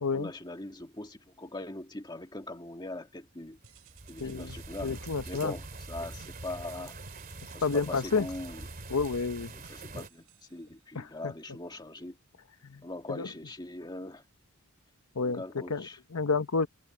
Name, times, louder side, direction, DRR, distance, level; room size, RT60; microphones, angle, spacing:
voice 1, 0.1-3.6 4.1-4.9 5.3-7.0 7.5-8.7 9.5-12.2 12.8-14.2 15.2-16.0, left 2 dB, 20° left, 1.9 m, -41 dB
sound 1, 3.6-10.1, right 2 dB, 40° right, 2.9 m, -44 dB
sound 2, 3.6-5.0 5.3-5.9 6.2-6.7 7.1-11.1, right 3 dB, 85° right, 5.3 m, -57 dB
voice 2, 4.2-4.6 4.8-5.5 7.6-8.3 8.9-9.5 10.9-11.3 12.6-12.8 13.1-13.3 15.2-16.7, left 4 dB, 80° left, 0.9 m, -30 dB
head